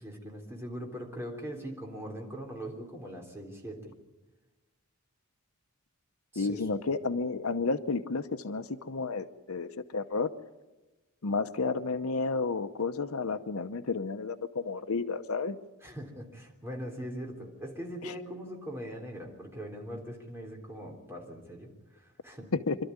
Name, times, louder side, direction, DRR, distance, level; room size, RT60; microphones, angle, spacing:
voice 1, 0.0-3.9 6.3-6.6 15.8-22.5, equal, 10° right, 0 dB, 3.5 m, -41 dB
voice 2, 6.4-10.3 11.2-15.6 18.0-18.1 22.5-22.8, left 4 dB, 75° left, 10 dB, 0.8 m, -31 dB
26.5 x 13.0 x 9.6 m, 1.1 s
head